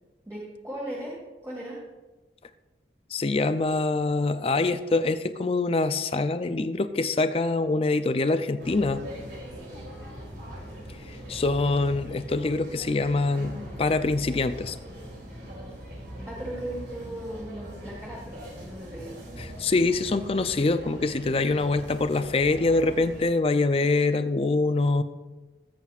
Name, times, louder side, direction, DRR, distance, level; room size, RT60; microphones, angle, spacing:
voice 1, 0.3-1.2 1.4-1.8 16.2-19.2, right 1 dB, 15° right, -5 dB, 1.8 m, -37 dB
voice 2, 3.1-9.0 10.9-14.8 19.4-25.0, left 3 dB, 35° left, 11 dB, 0.4 m, -25 dB
sound 1, 8.6-23.2, equal, 75° right, 2.8 m, -41 dB
19.5 x 7.6 x 2.4 m, 1.2 s
head